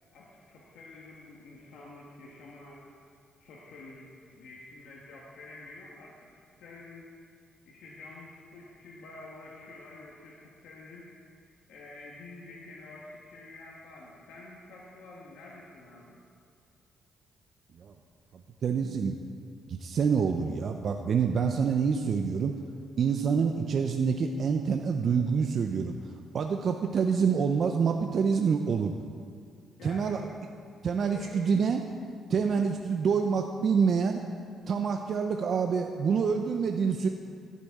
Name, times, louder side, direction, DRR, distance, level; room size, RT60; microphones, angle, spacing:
voice 1, 0.1-2.8 3.4-6.3 6.6-7.1 7.6-11.4 11.7-16.2 29.8-30.3 30.9-31.4 32.5-32.8, left 2 dB, 80° left, -4 dB, 1.3 m, -48 dB
voice 2, 18.6-19.2 19.7-22.6 23.0-26.0 26.3-28.9 29.8-30.2 30.8-31.8 32.3-34.2 34.7-37.1, right 6 dB, 55° right, 4 dB, 0.5 m, -26 dB
14.5 x 8.3 x 3.6 m, 2.2 s
cardioid pair, 90°, 0 cm